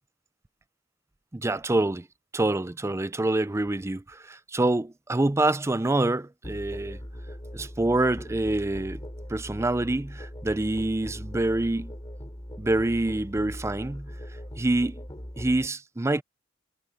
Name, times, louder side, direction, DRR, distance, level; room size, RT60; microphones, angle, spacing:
voice 1, 1.3-2.1 2.3-7.0 7.5-9.0 9.3-11.9 12.6-14.1 14.6-15.0 15.4-16.2, right 2 dB, 15° right, 0.5 m, -26 dB
Musical instrument, 6.4-15.7, equal, 25° left, 3.0 m, -40 dB
head